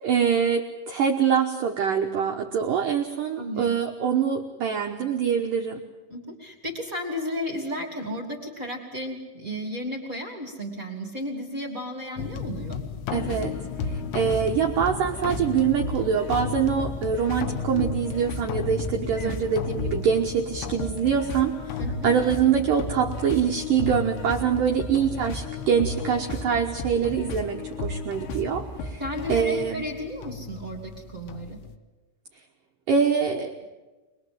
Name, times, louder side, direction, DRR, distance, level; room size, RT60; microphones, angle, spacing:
voice 1, 0.0-5.8 13.1-13.5 13.8-29.0 29.3-29.8 32.9-33.7, right 7 dB, 75° right, 2 dB, 2.0 m, -24 dB
voice 2, 3.4-3.7 6.1-12.8 19.2-19.4 21.8-22.1 29.0-31.6, equal, 25° right, 0 dB, 1.9 m, -33 dB
sound 1, 12.2-31.8, left 7 dB, 85° left, 3.4 m, -36 dB
sound 2, 13.2-29.7, left 3 dB, 65° left, 3.1 m, -35 dB
24.0 x 21.5 x 7.8 m, 1.2 s
omnidirectional pair, 5.5 m